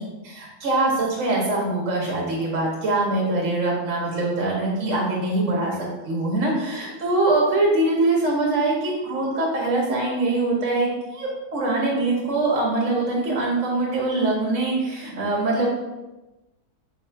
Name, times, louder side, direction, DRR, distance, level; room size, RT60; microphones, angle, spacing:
voice 1, 0.2-15.7, right 2 dB, 60° right, -3 dB, 1.1 m, -23 dB
4.0 x 2.3 x 4.4 m, 1.1 s
omnidirectional pair, 1.6 m